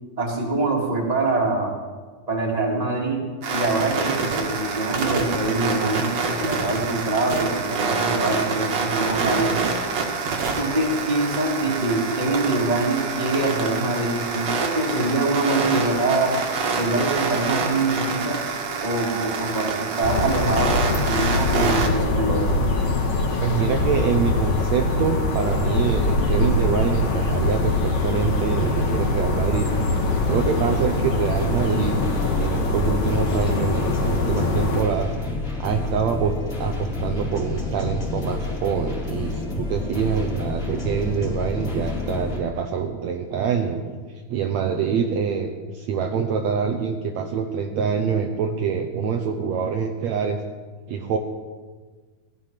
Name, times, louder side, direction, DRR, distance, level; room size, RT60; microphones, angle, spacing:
voice 1, 0.2-1.7 2.3-3.2 3.5-9.6 10.6-16.4 16.7-18.4 18.8-22.6, right 2 dB, 10° right, -2 dB, 2.4 m, -24 dB
sound 1, 3.4-21.9, right 4 dB, 50° right, 2.5 m, -26 dB
sound 2, 20.0-34.8, left 2 dB, 45° left, 2.7 m, -23 dB
voice 2, 23.4-29.9 30.2-32.0 32.3-35.1 35.6-44.0 44.3-50.4 50.9-51.2, right 6 dB, 80° right, 4 dB, 1.5 m, -25 dB
sound 3, 25.6-42.4, left 2 dB, 25° left, 2.9 m, -30 dB
18.0 x 13.5 x 5.9 m, 1.4 s
omnidirectional pair, 4.4 m